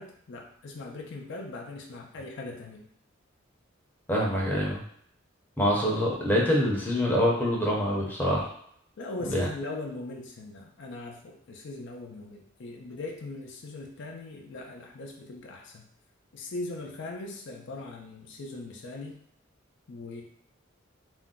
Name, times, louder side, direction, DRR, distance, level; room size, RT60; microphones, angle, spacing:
voice 1, 0.0-2.9 9.0-15.8 16.3-19.2 19.9-20.2, left 2 dB, 65° left, 1 dB, 0.5 m, -40 dB
voice 2, 4.1-4.8 5.6-8.5 9.2-9.5, equal, 10° left, -4 dB, 0.7 m, -25 dB
2.5 x 2.1 x 3.6 m, 0.67 s
head